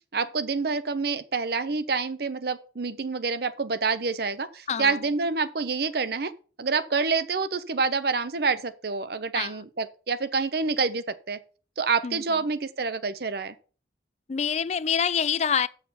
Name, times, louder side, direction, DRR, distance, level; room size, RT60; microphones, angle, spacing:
voice 1, 0.1-6.3 6.6-11.4 11.8-13.5, right 4 dB, 60° right, 0.7 m, -27 dB
voice 2, 14.3-15.7, left 7 dB, 40° left, 0.4 m, -26 dB
7.1 x 6.6 x 5.6 m
head